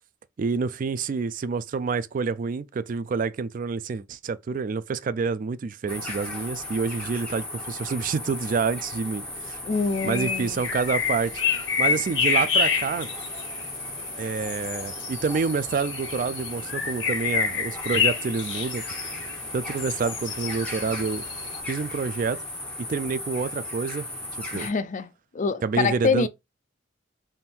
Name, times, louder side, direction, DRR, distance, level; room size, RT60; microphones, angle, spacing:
voice 1, 0.4-9.6 10.0-11.3 11.8-13.1 14.2-18.8 19.5-21.2 21.7-22.4 22.9-24.1 24.3-24.7 25.6-26.3, right 5 dB, 45° right, 0.3 m, -28 dB
sound 1, 5.9-24.7, left 1 dB, 5° left, 1.5 m, -36 dB
voice 2, 9.7-10.6 24.5-26.3, left 4 dB, 40° left, 0.4 m, -26 dB
sound 2, 9.9-21.6, left 6 dB, 85° left, 1.1 m, -28 dB
3.6 x 2.6 x 4.3 m
head